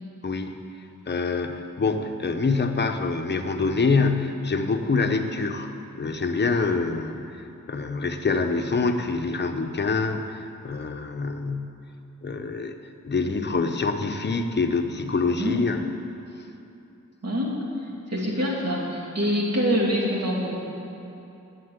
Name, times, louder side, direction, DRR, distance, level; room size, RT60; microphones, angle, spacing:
voice 1, 0.2-0.5 1.1-7.3 7.7-11.7 12.2-12.8 13.0-15.8, left 4 dB, 35° left, 5 dB, 0.8 m, -25 dB
voice 2, 15.2-15.6 17.2-17.6 18.1-20.5, equal, 55° right, -3 dB, 2.7 m, -25 dB
11.5 x 8.5 x 9.6 m, 2.8 s
wide cardioid pair, 170°, 32 cm